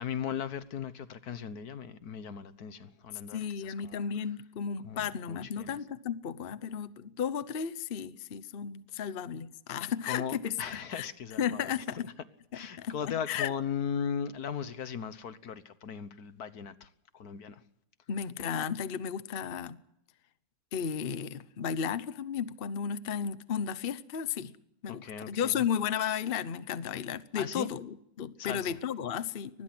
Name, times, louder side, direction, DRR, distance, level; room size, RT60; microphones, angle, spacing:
voice 1, 0.0-4.0 4.8-5.8 10.0-11.7 12.0-12.1 12.5-17.6 24.9-25.6 27.4-27.7 28.4-28.8, left 8 dB, 75° left, 1.6 m, -38 dB
voice 2, 3.3-11.1 11.4-12.0 12.8-13.5 18.1-19.8 20.7-24.5 24.8-29.6, left 8 dB, 45° left, 1.0 m, -34 dB
24.0 x 20.5 x 6.0 m
omnidirectional pair, 1.7 m